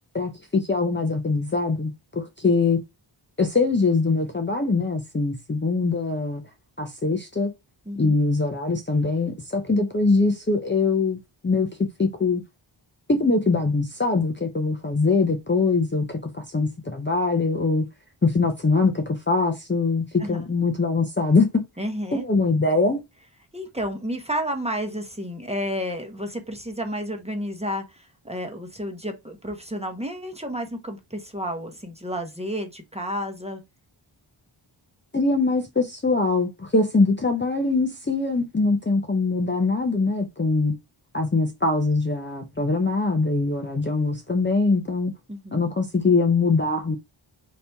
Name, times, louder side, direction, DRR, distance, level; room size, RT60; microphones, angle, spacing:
voice 1, 0.1-2.8 3.4-6.4 6.8-7.5 8.0-11.7 12.0-12.4 13.1-17.9 18.2-21.6 22.1-23.0 35.1-40.8 41.1-45.1 45.5-47.0, left 3 dB, 25° left, 0.6 m, -22 dB
voice 2, 7.9-8.2 20.2-20.5 21.8-22.2 23.5-33.6 45.3-45.6, equal, 15° right, 0.9 m, -31 dB
4.2 x 2.9 x 3.4 m
wide cardioid pair, 70°, 49 cm